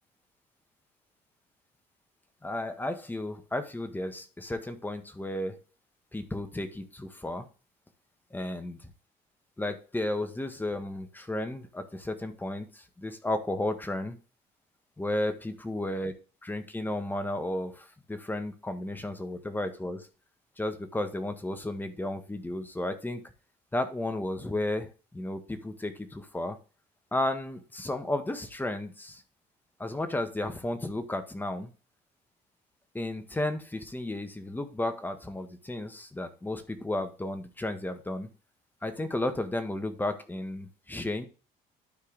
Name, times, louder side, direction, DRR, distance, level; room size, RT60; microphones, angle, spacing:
voice 1, 2.4-5.6 6.1-7.5 8.3-8.9 9.6-14.2 15.0-16.1 16.4-20.1 20.6-23.2 23.7-26.6 27.1-29.2 29.8-31.7 32.9-38.3 38.8-41.3, left 1 dB, 10° left, 8 dB, 1.6 m, -33 dB
12.0 x 4.6 x 3.5 m, 0.33 s
cardioid pair, 110°, 17 cm